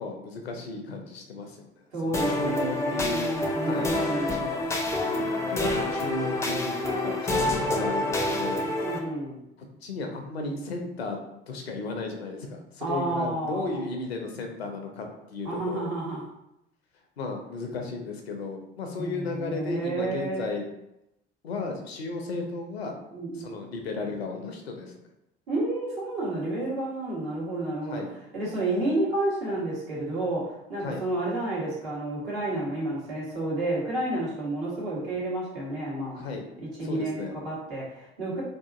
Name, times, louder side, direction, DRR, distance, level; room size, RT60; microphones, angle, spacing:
voice 1, 0.0-3.3 3.6-4.0 5.1-8.7 9.8-11.2 11.5-15.9 17.2-20.7 21.4-22.9 23.3-25.0 27.9-28.1 30.8-31.0 36.1-36.4 36.8-37.3, left 3 dB, 80° left, 3 dB, 0.5 m, -34 dB
voice 2, 1.9-4.6 8.8-9.4 12.8-13.8 15.4-16.2 19.0-20.6 23.1-23.7 25.5-28.0 28.3-36.3 36.6-38.4, right 2 dB, 65° right, -6 dB, 1.2 m, -31 dB
sound 1, 2.1-9.0, left 1 dB, 10° left, 0.4 m, -27 dB
2.7 x 2.4 x 2.4 m, 0.85 s
figure-of-eight pair, 55°, 31 cm